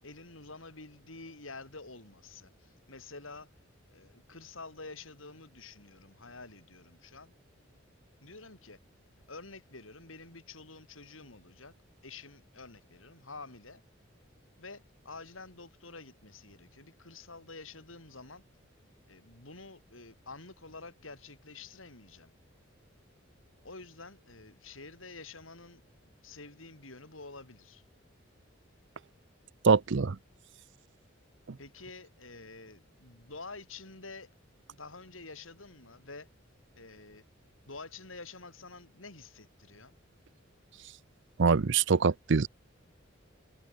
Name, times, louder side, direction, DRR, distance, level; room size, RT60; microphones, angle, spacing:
voice 1, 0.0-3.5 3.9-7.3 8.2-8.8 9.3-11.7 12.0-13.8 14.6-18.4 19.1-22.3 23.6-25.8 26.2-27.8 31.6-34.3 34.7-36.3 36.8-37.2 37.7-39.9, left 3 dB, 90° left, 6.7 m, -48 dB
voice 2, 29.6-30.2 41.4-42.5, right 5 dB, 65° right, 0.6 m, -24 dB
head